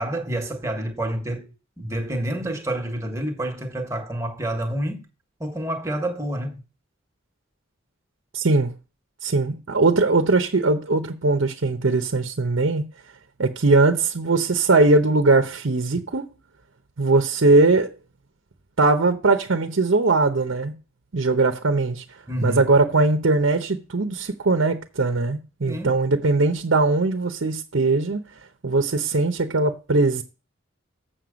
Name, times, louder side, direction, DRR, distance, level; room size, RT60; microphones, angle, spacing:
voice 1, 0.0-5.1 5.4-6.6 22.3-22.6 25.7-25.9, right 1 dB, 15° right, 1.4 m, -28 dB
voice 2, 8.3-8.7 9.2-12.9 13.4-16.3 17.0-17.9 18.8-20.7 21.1-22.0 22.4-28.2 28.6-30.2, right 3 dB, 75° right, 0.8 m, -20 dB
7.8 x 6.5 x 5.1 m
head